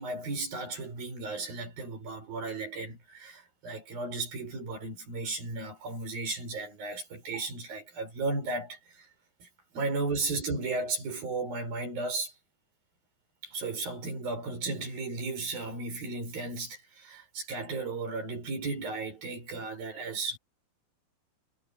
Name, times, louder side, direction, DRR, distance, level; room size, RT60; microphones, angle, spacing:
voice 1, 0.0-9.1 9.4-9.5 9.7-12.3 13.4-20.4, right 3 dB, 75° right, 9.3 m, -35 dB
omnidirectional pair, 4.2 m